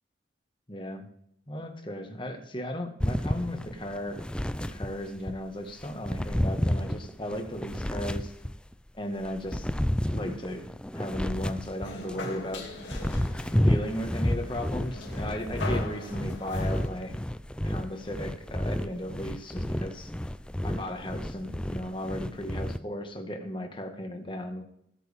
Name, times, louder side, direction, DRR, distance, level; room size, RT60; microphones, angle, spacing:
voice 1, 0.7-1.1 1.5-4.2 4.6-8.3 8.9-9.7 10.1-12.7 13.6-17.1 17.6-20.1 20.6-24.6, left 1 dB, 25° left, 5 dB, 1.7 m, -36 dB
sound 1, 3.0-5.4 5.8-8.7 9.2-12.2 12.7-22.8, equal, 5° left, 0.4 m, -31 dB
sound 2, 11.8-16.9, left 2 dB, 85° left, 2.6 m, -40 dB
20.0 x 8.4 x 3.6 m, 0.74 s
head